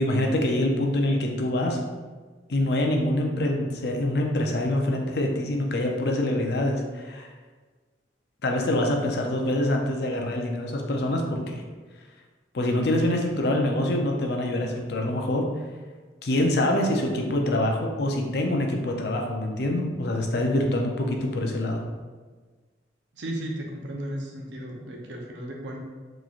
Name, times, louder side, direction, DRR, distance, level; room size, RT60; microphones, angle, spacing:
voice 1, 0.0-1.8 2.5-7.3 8.4-11.6 12.5-15.5 16.2-21.8, left 1 dB, 60° left, 1 dB, 0.5 m, -25 dB
voice 2, 23.1-25.8, right 1 dB, 75° right, 0 dB, 0.6 m, -35 dB
3.7 x 3.0 x 2.4 m, 1.4 s
head